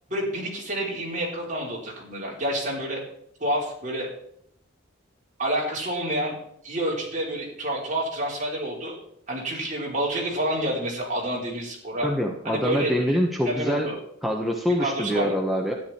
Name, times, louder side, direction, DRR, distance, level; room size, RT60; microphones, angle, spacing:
voice 1, 0.1-3.0 3.4-4.1 5.4-6.4 6.6-9.0 9.3-12.1 12.4-12.9 13.4-13.9 14.8-15.4, right 1 dB, 40° right, -3 dB, 4.5 m, -28 dB
voice 2, 12.0-13.9 14.2-15.7, equal, ahead, 0 dB, 1.1 m, -25 dB
13.0 x 10.5 x 4.4 m, 0.71 s
head